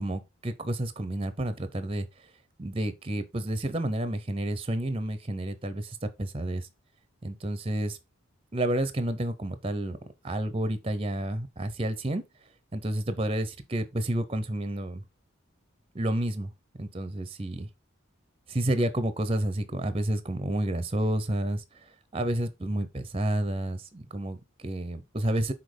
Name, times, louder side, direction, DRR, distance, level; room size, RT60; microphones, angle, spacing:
voice 1, 0.0-2.1 2.6-6.7 7.2-8.0 8.5-10.0 10.2-12.2 12.7-15.0 15.9-16.5 16.8-17.7 18.5-21.6 22.1-25.5, right 1 dB, 25° right, 0.9 m, -30 dB
6.4 x 4.4 x 5.0 m
head